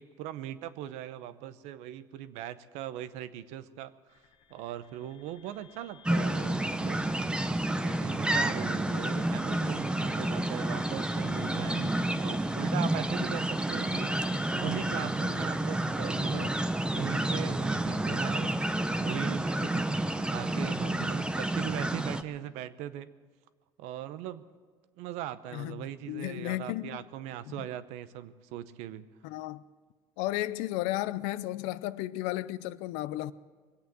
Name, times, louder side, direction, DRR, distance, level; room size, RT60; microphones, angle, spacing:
voice 1, 0.0-3.9 4.5-7.1 7.8-16.5 16.9-23.1 23.8-24.4 25.0-29.1, right 12 dB, 80° right, 0.8 m, -40 dB
sound 1, 4.1-17.1, left 9 dB, 60° left, 1.4 m, -53 dB
sound 2, 6.0-22.2, right 1 dB, 10° right, 0.7 m, -30 dB
voice 2, 25.5-27.0 27.5-27.7 29.2-29.6 30.2-33.3, left 16 dB, 85° left, 0.5 m, -34 dB
22.5 x 8.3 x 7.7 m
supercardioid pair, 100°, 12 cm